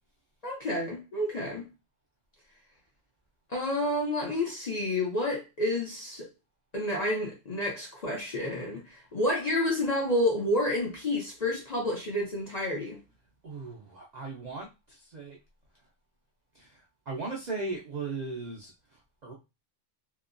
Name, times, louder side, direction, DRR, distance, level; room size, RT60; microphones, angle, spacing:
voice 1, 0.4-1.6 3.5-6.3 6.7-13.0, left 1 dB, 45° left, 0.6 m, -29 dB
voice 2, 13.4-15.4 16.5-16.8 17.1-18.7 19.2-19.3, right 3 dB, 55° right, 0.4 m, -37 dB
2.9 x 2.2 x 2.5 m
omnidirectional pair, 1.3 m